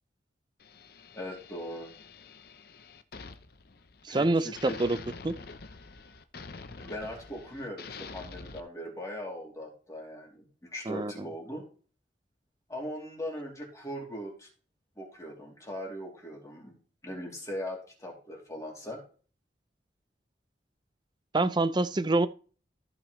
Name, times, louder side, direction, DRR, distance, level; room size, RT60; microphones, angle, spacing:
sound 1, 0.6-4.2 4.5-8.6, left 4 dB, 60° left, 0.8 m, -47 dB
voice 1, 1.1-1.9 4.1-4.8 6.8-11.6 12.7-14.5 15.0-16.7 17.0-19.0, equal, 20° left, 3.0 m, -40 dB
voice 2, 4.1-5.0 5.2-5.3 10.9-11.1 21.3-22.3, right 2 dB, 25° right, 0.5 m, -26 dB
14.5 x 6.0 x 3.2 m
head